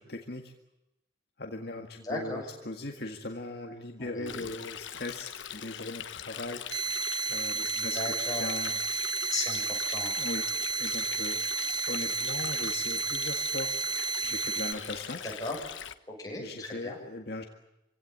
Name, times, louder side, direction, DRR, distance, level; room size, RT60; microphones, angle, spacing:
voice 1, 0.1-0.5 1.4-8.8 10.2-10.4 10.8-15.2 16.4-17.4, left 2 dB, 55° left, 3 dB, 1.9 m, -39 dB
voice 2, 2.0-2.5 4.0-4.5 7.7-8.5 9.3-10.2 11.4-11.5 15.2-15.6 16.1-17.0, left 2 dB, 20° left, -1 dB, 7.4 m, -37 dB
Stream, 4.3-15.9, left 9 dB, 90° left, 1.2 m, -41 dB
sound 1, 6.7-14.7, right 4 dB, 20° right, 1.1 m, -32 dB
26.0 x 17.0 x 9.7 m, 0.90 s
head